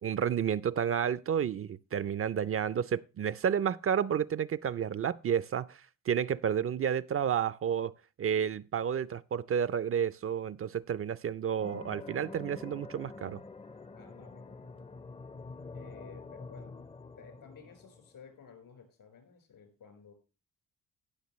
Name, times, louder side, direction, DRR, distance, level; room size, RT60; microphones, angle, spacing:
voice 1, 0.0-5.8 6.1-7.9 8.2-13.4, right 8 dB, 40° right, 0.4 m, -31 dB
sound 1, 11.6-18.4, left 3 dB, 15° left, 0.5 m, -47 dB
voice 2, 13.9-14.9 15.7-16.8 17.2-20.1, left 6 dB, 75° left, 4.2 m, -54 dB
17.5 x 6.5 x 3.0 m
cardioid pair, 70°, 34 cm